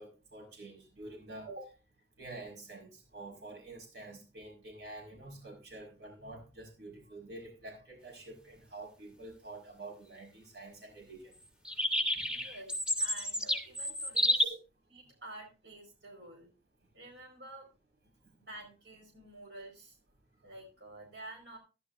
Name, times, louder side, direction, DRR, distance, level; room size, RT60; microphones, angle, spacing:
voice 1, 0.0-1.7 2.2-11.3 12.2-12.4 13.1-13.3 14.4-14.6, right 2 dB, 70° right, 3 dB, 5.2 m, -48 dB
sound 1, 11.6-14.4, left 1 dB, 5° right, 1.4 m, -30 dB
voice 2, 12.3-14.5 14.9-16.5 16.9-17.7 18.4-20.0 20.4-21.6, right 1 dB, 85° right, 0 dB, 4.9 m, -50 dB
15.0 x 11.0 x 2.6 m, 0.29 s
head